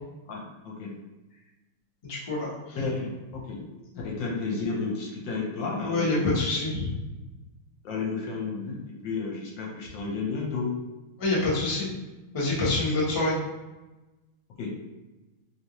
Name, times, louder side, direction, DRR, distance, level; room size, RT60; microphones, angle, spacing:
voice 1, 0.3-0.9 2.7-3.6 4.0-6.5 7.8-10.7 14.6-14.7, left 4 dB, 70° left, -3 dB, 1.3 m, -32 dB
voice 2, 2.0-2.8 5.8-7.0 11.2-11.9 12.3-13.4, left 2 dB, 45° left, -7 dB, 0.4 m, -26 dB
3.4 x 2.7 x 3.0 m, 1.1 s
omnidirectional pair, 2.4 m